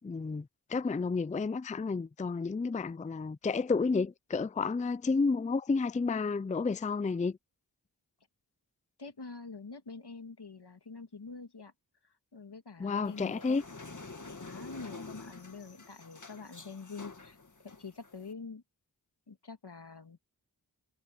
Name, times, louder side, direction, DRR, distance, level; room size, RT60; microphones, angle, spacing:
voice 1, 0.0-7.4 12.8-13.6, left 4 dB, 20° left, 0.4 m, -31 dB
voice 2, 9.0-11.7 12.3-13.6 14.4-18.6 19.3-20.2, left 4 dB, 85° left, 2.5 m, -46 dB
sound 1, 13.0-18.3, left 3 dB, 50° left, 2.0 m, -48 dB
wide cardioid pair, 60°, 39 cm